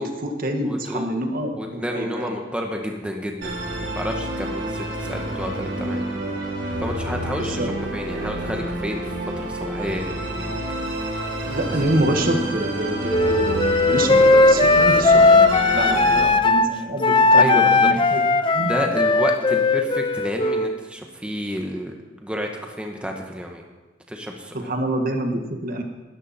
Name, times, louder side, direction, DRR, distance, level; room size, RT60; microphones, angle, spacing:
voice 1, 0.0-2.3 7.3-7.9 11.5-18.7 24.5-25.8, right 1 dB, 50° right, 4 dB, 1.7 m, -27 dB
voice 2, 0.6-1.1 1.6-6.0 6.8-9.0 9.4-10.6 15.8-16.0 17.1-17.9 18.6-21.9 22.2-23.6 24.1-24.6, equal, 5° right, 2 dB, 1.3 m, -30 dB
Musical instrument, 3.4-16.2, right 1 dB, 70° right, 5.3 m, -29 dB
Wind instrument woodwind instrument, 13.1-16.7 17.0-20.8, left 3 dB, 25° left, 0.6 m, -17 dB
19.5 x 13.5 x 4.3 m, 1.3 s
head